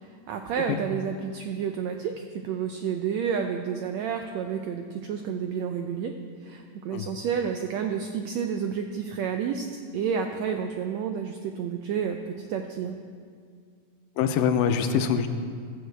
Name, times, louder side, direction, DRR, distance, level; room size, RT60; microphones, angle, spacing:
voice 1, 0.0-6.1 6.4-9.7 9.9-13.0, right 7 dB, 85° right, 5 dB, 1.5 m, -30 dB
voice 2, 14.2-15.3, left 7 dB, 80° left, 8 dB, 2.3 m, -24 dB
15.0 x 13.5 x 3.4 m, 2.1 s
omnidirectional pair, 3.9 m